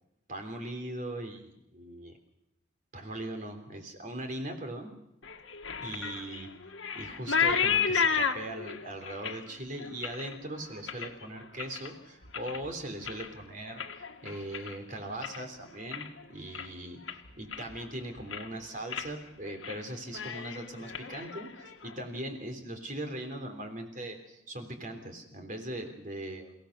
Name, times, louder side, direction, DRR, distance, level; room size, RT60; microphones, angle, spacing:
voice 1, 0.3-2.2 2.9-4.9 5.8-6.5 6.9-17.0 17.4-21.5 21.8-26.5, right 1 dB, 40° right, 6 dB, 3.5 m, -40 dB
sound 1, 5.2-11.9 12.2-12.7 13.0-15.5 15.8-16.2 16.5-16.7 17.1-17.9 18.2-18.6 18.9-19.1 19.4-19.8 20.1-21.9, left 6 dB, 70° left, 1.7 m, -33 dB
29.5 x 17.5 x 6.6 m, 0.82 s
head